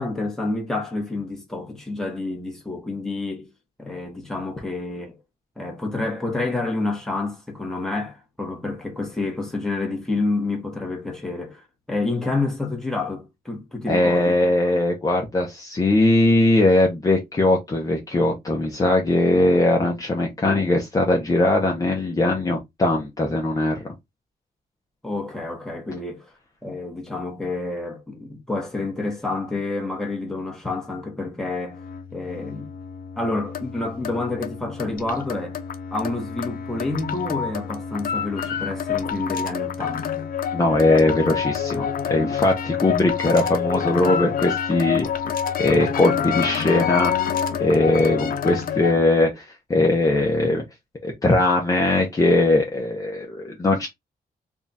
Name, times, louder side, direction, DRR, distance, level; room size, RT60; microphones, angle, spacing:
voice 1, 0.0-3.5 3.8-5.2 5.6-14.8 25.0-26.3 26.6-31.8 32.1-32.7 33.2-35.6 35.9-40.1, left 2 dB, 5° left, 1.0 m, -29 dB
voice 2, 13.9-23.8 40.5-45.0 45.6-47.1 47.6-49.4 49.7-50.6 51.0-53.9, left 2 dB, 20° left, 0.7 m, -20 dB
sound 1, 31.6-49.0, left 8 dB, 60° left, 0.6 m, -27 dB
3.5 x 2.4 x 4.0 m
wide cardioid pair, 180°, 16 cm